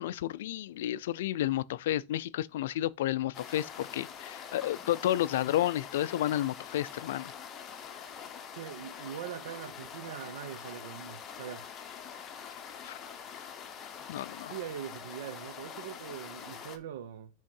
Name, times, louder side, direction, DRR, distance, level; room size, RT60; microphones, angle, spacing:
voice 1, 0.0-7.3 12.8-13.0 14.1-14.5, left 13 dB, 70° left, 0.3 m, -31 dB
sound 1, 3.3-16.8, left 7 dB, 25° left, 0.9 m, -45 dB
voice 2, 8.5-11.7 14.5-17.3, right 9 dB, 75° right, 0.7 m, -42 dB
5.3 x 3.6 x 5.3 m
supercardioid pair, 145°, 0 cm